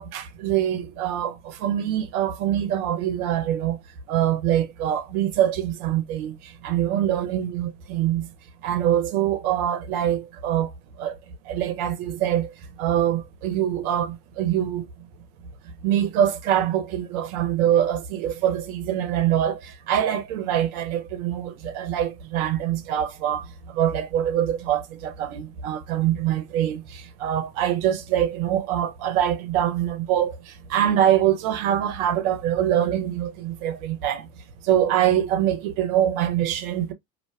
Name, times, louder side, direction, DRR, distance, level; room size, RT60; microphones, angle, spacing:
voice 1, 0.0-3.8 4.1-8.3 8.6-10.7 11.0-14.9 15.8-34.3 34.6-36.9, right 11 dB, 65° right, 0.7 m, -24 dB
2.5 x 2.2 x 2.2 m
hypercardioid pair, 70°, 47 cm